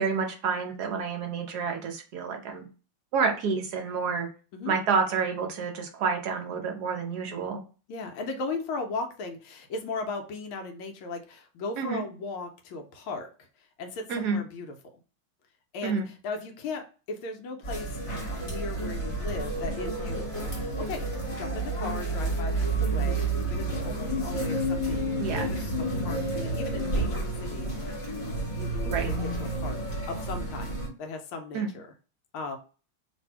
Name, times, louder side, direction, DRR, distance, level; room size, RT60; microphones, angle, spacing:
voice 1, 0.0-2.7 3.1-4.3 4.7-7.6 11.8-12.0 14.1-14.4 15.8-16.0 25.2-25.5 28.9-29.1 31.5-31.7, right 5 dB, 60° right, 3 dB, 1.1 m, -29 dB
voice 2, 7.9-14.7 15.7-18.0 18.4-21.1 21.4-23.2 23.5-25.6 26.0-28.0 28.5-29.8 30.1-31.9 32.3-32.6, left 3 dB, 85° left, 4 dB, 1.5 m, -37 dB
sound 1, 17.6-30.9, right 2 dB, 40° left, 1.1 m, -30 dB
3.3 x 2.6 x 4.4 m, 0.36 s
omnidirectional pair, 2.3 m